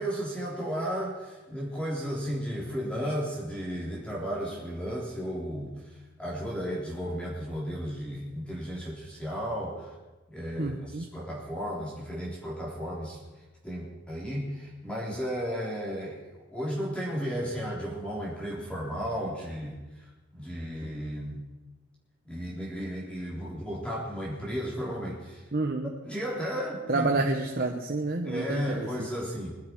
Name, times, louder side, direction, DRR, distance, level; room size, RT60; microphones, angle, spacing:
voice 1, 0.0-9.9 10.3-13.2 13.6-20.1 20.3-21.4 22.3-25.5 26.0-27.3 28.2-29.6, equal, 5° left, -5 dB, 3.6 m, -34 dB
voice 2, 10.6-11.1 25.5-25.9 26.9-29.1, right 3 dB, 50° right, 3 dB, 1.0 m, -29 dB
21.5 x 12.0 x 4.6 m, 1.2 s
head